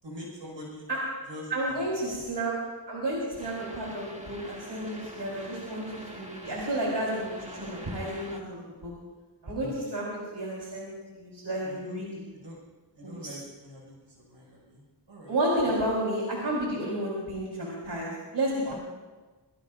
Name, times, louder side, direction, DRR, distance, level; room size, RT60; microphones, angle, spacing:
voice 1, 0.0-0.9 1.3-2.3 9.6-9.7 11.6-12.0 12.3-12.6 12.9-15.7 18.6-18.7, equal, 90° right, -2 dB, 6.2 m, -44 dB
voice 2, 1.5-2.5 2.9-8.9 9.4-12.1 13.0-13.3 15.3-18.7, right 1 dB, 70° right, -5 dB, 4.4 m, -31 dB
sound 1, 3.4-8.4, right 1 dB, 15° right, 1.9 m, -45 dB
23.0 x 19.5 x 2.7 m, 1.3 s
wide cardioid pair, 60°, 43 cm